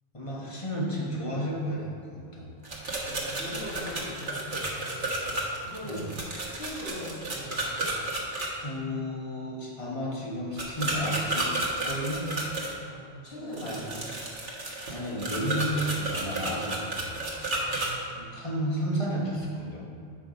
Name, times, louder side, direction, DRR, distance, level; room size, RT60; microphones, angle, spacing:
voice 1, 0.1-2.5 5.8-6.1 8.6-11.5 11.8-12.2 13.4-13.8 14.9-17.1 18.1-19.9, equal, 30° left, -4 dB, 1.5 m, -32 dB
sound 1, 2.6-8.5 10.6-12.7 13.5-17.9, right 2 dB, 45° right, 1.4 m, -32 dB
voice 2, 3.0-5.1 5.6-7.8 12.8-14.1 17.5-18.4, left 1 dB, 60° left, -8 dB, 2.3 m, -41 dB
7.9 x 5.0 x 5.1 m, 2.4 s
omnidirectional pair, 1.2 m